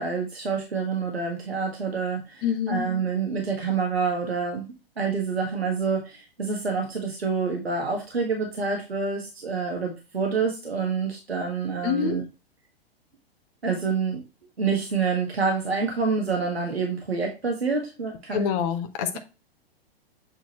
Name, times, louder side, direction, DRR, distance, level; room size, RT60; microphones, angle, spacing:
voice 1, 0.0-12.2 13.6-14.2 14.6-18.6, right 5 dB, 80° right, 1.6 m, -27 dB
voice 2, 2.4-2.9 11.8-12.2 18.3-19.2, left 8 dB, 35° left, 1.0 m, -26 dB
8.1 x 4.1 x 3.0 m
figure-of-eight pair, 105°, 30 cm